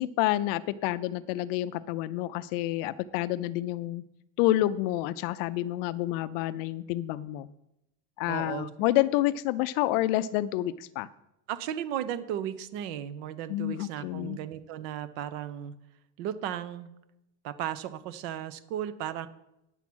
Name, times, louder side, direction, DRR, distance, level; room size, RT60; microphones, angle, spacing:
voice 1, 0.0-4.0 4.4-7.5 8.2-11.1 13.5-14.4, left 15 dB, 50° left, 15 dB, 0.5 m, -28 dB
voice 2, 8.3-8.7 11.5-15.7 16.2-16.9 17.4-19.3, right 10 dB, 55° right, 14 dB, 0.9 m, -35 dB
9.8 x 7.2 x 6.2 m, 0.87 s
cardioid pair, 165°, 36 cm